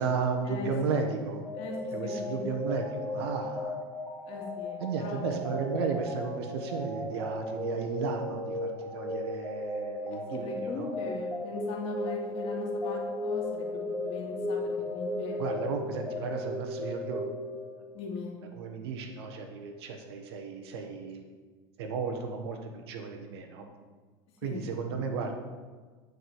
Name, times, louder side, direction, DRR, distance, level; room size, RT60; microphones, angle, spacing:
voice 1, 0.0-1.4 1.9-3.8 4.8-10.9 15.4-17.3 18.5-21.2 21.8-23.7 24.4-25.4, right 5 dB, 80° right, 4 dB, 1.2 m, -34 dB
sound 1, 1.4-18.0, left 1 dB, 10° right, 2.0 m, -35 dB
voice 2, 1.6-2.4 4.3-5.3 10.1-15.4 17.9-18.3 24.4-24.6, left 3 dB, 50° left, -1 dB, 2.1 m, -39 dB
9.2 x 4.8 x 4.7 m, 1.4 s
supercardioid pair, 115°, 13 cm